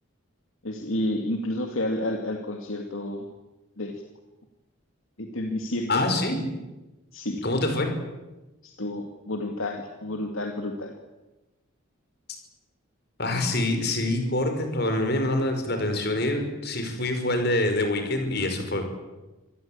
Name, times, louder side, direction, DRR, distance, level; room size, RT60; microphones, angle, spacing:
voice 1, 0.6-3.3 3.8-3.9 5.2-6.0 7.1-7.4 8.6-10.9, left 1 dB, 70° left, 3 dB, 2.3 m, -30 dB
voice 2, 5.9-6.4 7.4-7.9 13.2-18.8, left 1 dB, 50° left, 5 dB, 5.3 m, -25 dB
25.5 x 18.5 x 8.8 m, 1.1 s
head